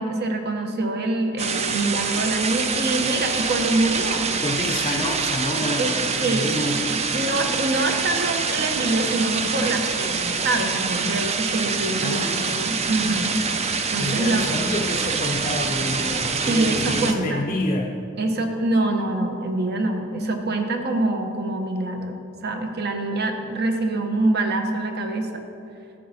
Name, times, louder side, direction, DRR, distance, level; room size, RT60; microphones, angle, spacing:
voice 1, 0.0-4.3 5.8-6.6 7.1-13.4 13.7-14.5 16.5-17.5 18.2-25.4, right 2 dB, 50° right, 5 dB, 0.9 m, -25 dB
sound 1, 1.4-17.1, right 5 dB, 30° right, 0.5 m, -25 dB
voice 2, 4.4-6.8 12.0-12.7 14.0-18.0, left 1 dB, 25° left, 0 dB, 0.5 m, -28 dB
11.5 x 7.7 x 4.1 m, 2.5 s
head